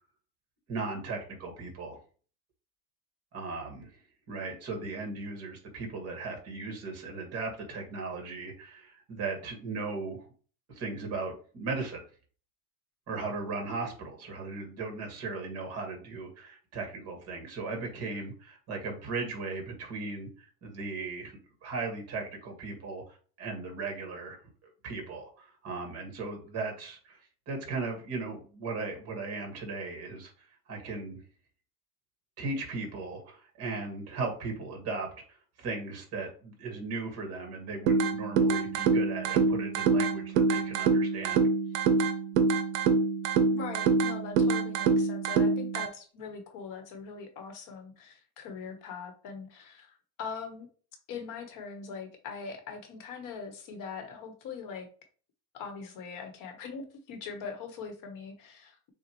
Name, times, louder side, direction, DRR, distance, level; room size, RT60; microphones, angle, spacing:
voice 1, 0.7-2.0 3.3-3.9 4.3-10.3 10.7-12.0 13.1-24.4 24.6-27.2 27.5-31.2 32.4-41.5, right 3 dB, 35° right, 2 dB, 1.9 m, -37 dB
sound 1, 37.9-45.9, right 4 dB, 60° right, 0.8 m, -26 dB
voice 2, 43.5-49.9 50.2-50.7 51.1-54.9 55.5-58.9, left 5 dB, 45° left, 5 dB, 1.2 m, -41 dB
6.8 x 2.4 x 3.1 m, 0.40 s
supercardioid pair, 140°, 43 cm